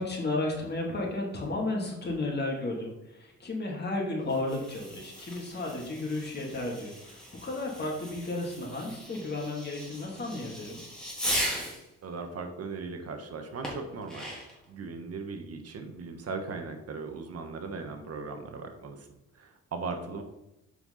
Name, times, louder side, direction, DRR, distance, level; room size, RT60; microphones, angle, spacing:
voice 1, 0.0-10.8, left 2 dB, 35° left, -2 dB, 2.8 m, -33 dB
Fireworks, 4.2-11.9 13.6-14.6, equal, ahead, 3.2 m, -38 dB
voice 2, 12.0-14.3 14.7-19.1 19.3-20.2, right 4 dB, 55° right, 6 dB, 1.3 m, -38 dB
7.9 x 5.7 x 4.1 m, 0.89 s
cardioid pair, 90°, 30 cm